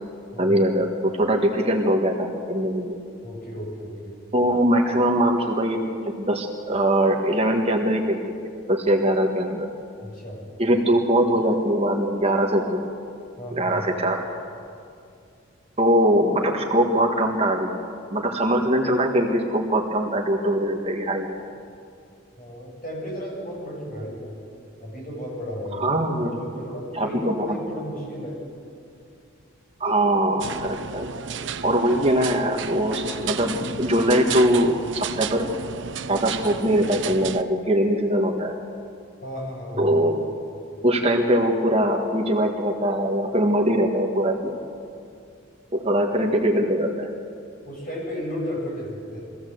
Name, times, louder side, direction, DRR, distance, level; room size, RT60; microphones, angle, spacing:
voice 1, 0.4-3.0 4.3-9.7 10.6-12.9 13.5-14.2 15.8-17.7 18.1-21.3 25.8-26.3 26.9-27.6 29.8-31.1 31.6-35.5 36.1-38.5 39.8-40.2 40.8-44.5 45.7-47.1, right 1 dB, 30° right, 2 dB, 1.6 m, -22 dB
voice 2, 3.2-4.2 10.0-10.4 13.4-13.8 22.4-24.3 24.8-28.4 39.2-40.0 47.6-49.2, equal, 45° left, -3 dB, 7.6 m, -34 dB
sound 1, 30.4-37.4, right 7 dB, 65° right, 0.7 m, -33 dB
23.0 x 16.0 x 7.8 m, 2.4 s
head